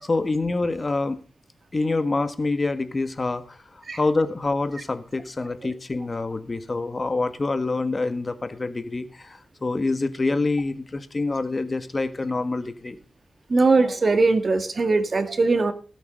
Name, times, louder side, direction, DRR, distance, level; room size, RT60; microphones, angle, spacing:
voice 1, 0.0-1.2 1.7-13.0, left 3 dB, 35° left, 11 dB, 1.6 m, -26 dB
voice 2, 13.5-15.7, right 3 dB, 50° right, 10 dB, 1.9 m, -20 dB
18.5 x 8.2 x 5.3 m, 0.37 s
wide cardioid pair, 80°, 0 cm